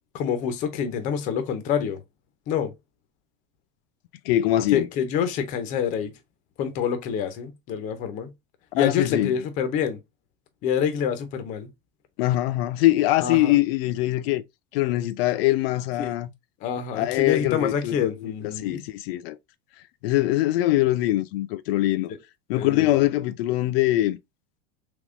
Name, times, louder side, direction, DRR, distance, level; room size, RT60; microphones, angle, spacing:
voice 1, 0.1-2.0 2.5-2.7 4.7-6.1 6.6-8.3 8.7-10.0 10.6-11.7 13.2-13.6 16.0-16.1 16.6-18.8 22.5-22.9, left 8 dB, 25° left, 0.4 m, -27 dB
voice 2, 4.2-4.9 8.8-9.3 12.2-14.4 14.7-16.3 16.9-19.4 20.0-22.1 22.5-24.2, left 15 dB, 80° left, 0.4 m, -23 dB
3.5 x 3.0 x 2.4 m
supercardioid pair, 175°, 29 cm